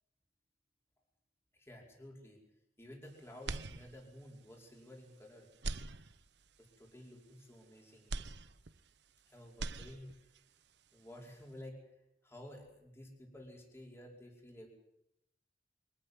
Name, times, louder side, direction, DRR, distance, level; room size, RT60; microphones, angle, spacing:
voice 1, 1.5-2.4 2.8-5.5 6.6-8.3 9.3-10.1 10.9-12.0 12.2-14.7, left 1 dB, 15° left, 0 dB, 5.3 m, -53 dB
sound 1, 3.4-4.3 4.8-4.9 5.5-6.6 8.1-9.2 9.4-10.4, right 3 dB, 80° right, 1.1 m, -43 dB
24.0 x 14.5 x 9.7 m, 0.83 s
head